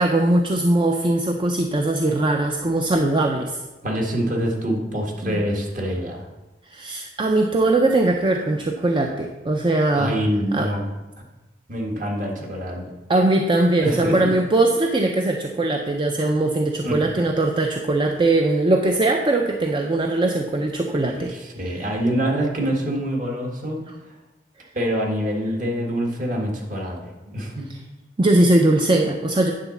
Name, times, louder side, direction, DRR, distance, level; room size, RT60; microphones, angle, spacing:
voice 1, 0.0-3.6 5.2-5.4 6.7-10.1 10.5-10.7 13.1-21.3 21.7-21.8 28.2-29.5, right 2 dB, 30° right, 3 dB, 0.5 m, -20 dB
voice 2, 3.8-6.3 9.9-11.3 11.7-12.9 13.8-14.2 16.8-17.0 21.1-23.8 24.7-27.6, equal, 50° right, 0 dB, 1.7 m, -25 dB
9.3 x 4.0 x 7.0 m, 1.1 s
head